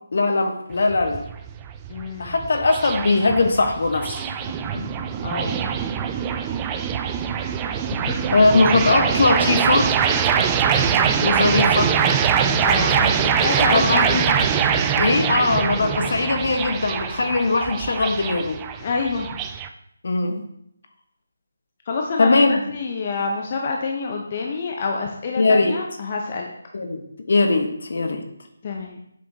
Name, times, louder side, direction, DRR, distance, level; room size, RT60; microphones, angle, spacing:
voice 1, 0.1-1.2 2.2-4.2 4.7-4.9 8.3-9.9 10.9-12.0 13.6-14.2 14.9-18.6 20.0-20.5 22.2-22.6 25.4-25.8 26.7-27.0 27.3-28.2, left 3 dB, 60° left, 5 dB, 1.1 m, -20 dB
sound 1, 0.7-19.7, right 7 dB, 15° right, 0.3 m, -23 dB
voice 2, 1.9-2.4 5.2-5.6 8.0-8.4 12.6-14.2 18.8-19.4 21.9-26.5 28.6-29.0, left 4 dB, 35° left, 1 dB, 0.7 m, -27 dB
7.7 x 5.5 x 2.8 m, 0.74 s
figure-of-eight pair, 165°, 0 cm